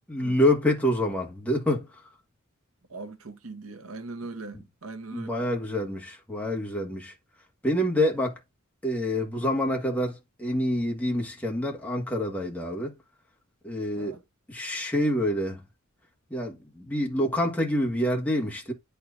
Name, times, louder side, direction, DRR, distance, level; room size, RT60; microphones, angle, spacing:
voice 1, 0.1-1.9 4.5-4.6 5.1-7.1 7.6-8.4 8.8-12.9 13.6-14.2 14.5-15.6 16.3-18.7, left 1 dB, 5° left, 1.5 m, -27 dB
voice 2, 2.9-5.3 13.9-14.2, right 3 dB, 70° right, 1.0 m, -40 dB
10.0 x 4.6 x 2.5 m
head